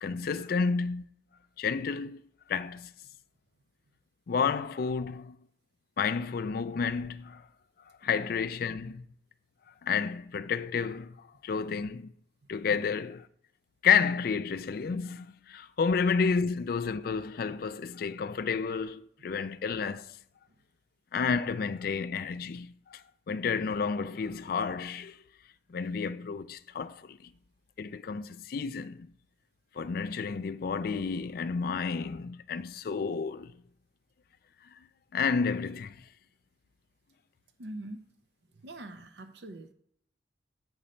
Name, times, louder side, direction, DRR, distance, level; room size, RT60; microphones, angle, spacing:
voice 1, 0.0-1.1 1.6-2.2 2.5-2.9 4.3-5.4 6.0-7.4 8.0-9.1 9.8-12.1 12.5-13.2 13.8-20.2 21.1-25.2 25.7-27.3 27.8-29.1 29.7-33.5 35.1-36.0, left 5 dB, 55° left, 0.3 m, -31 dB
voice 2, 37.6-38.0 38.5-39.7, right 1 dB, 65° right, 0.6 m, -43 dB
7.9 x 5.1 x 4.3 m
head